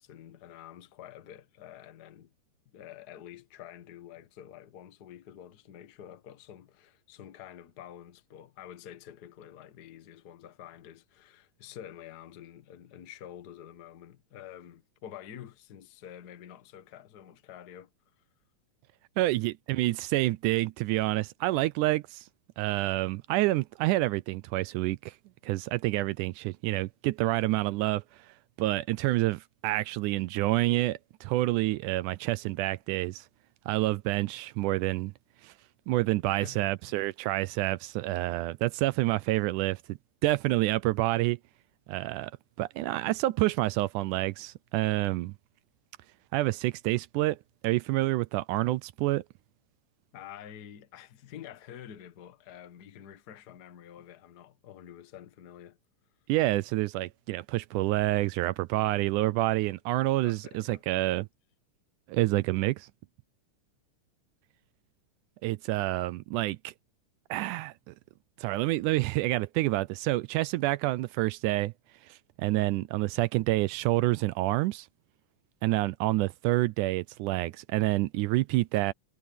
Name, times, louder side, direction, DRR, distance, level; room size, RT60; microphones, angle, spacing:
voice 1, 0.0-2.3 2.7-17.9 36.3-37.0 50.1-55.8 60.2-60.8, left 10 dB, 55° left, 1.1 m, -48 dB
voice 2, 19.2-22.2 22.6-25.1 25.4-28.0 28.6-33.2 33.7-35.1 35.4-35.5 35.9-41.4 41.9-42.3 42.6-45.3 46.3-47.4 47.6-49.2 56.3-61.3 62.1-62.9 65.4-66.7 67.3-67.9 68.4-71.7 72.1-74.9 75.6-78.9, right 18 dB, 80° right, 2.0 m, -28 dB
omnidirectional pair, 3.7 m